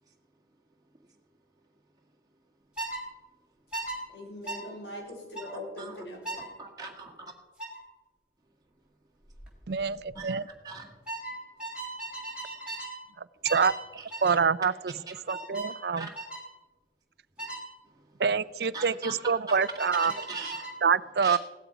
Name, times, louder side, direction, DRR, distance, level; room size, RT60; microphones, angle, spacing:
sound 1, 2.8-3.0 3.7-4.0 4.5-4.6 5.3-5.5 6.2-6.5 7.6-7.8 9.3-9.5 9.8-10.1 11.1-13.0 13.5-13.8 14.1-14.4 15.3-15.7 16.1-16.5 17.4-17.6 19.5-20.8, right 2 dB, 5° right, 3.2 m, -38 dB
voice 1, 4.1-6.4, left 1 dB, 70° left, -1 dB, 5.1 m, -41 dB
voice 2, 6.4-7.3 10.1-11.0 13.9-14.1 15.1-15.2 16.0-16.1 17.4-17.6 18.0-18.2 18.7-19.6 20.0-20.8 21.2-21.4, right 4 dB, 20° right, -1 dB, 1.8 m, -42 dB
voice 3, 9.7-10.4 13.4-13.7 14.2-14.7 15.3-16.1 18.2-20.1 20.8-21.4, right 5 dB, 60° right, 18 dB, 0.4 m, -26 dB
16.5 x 12.5 x 5.1 m, 1.2 s
head